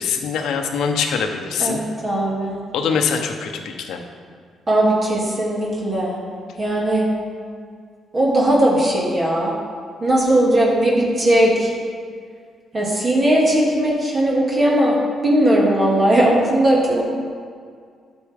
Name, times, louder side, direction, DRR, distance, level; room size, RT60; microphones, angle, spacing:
voice 1, 0.0-1.8 2.7-4.0, left 6 dB, 80° left, 4 dB, 0.9 m, -23 dB
voice 2, 1.6-2.6 4.7-6.2 6.6-7.1 8.1-9.5 10.0-11.7 12.7-14.9 15.2-17.0, right 1 dB, 35° right, -4 dB, 2.1 m, -18 dB
11.5 x 6.7 x 3.6 m, 2.1 s
cardioid pair, 90°, 0 cm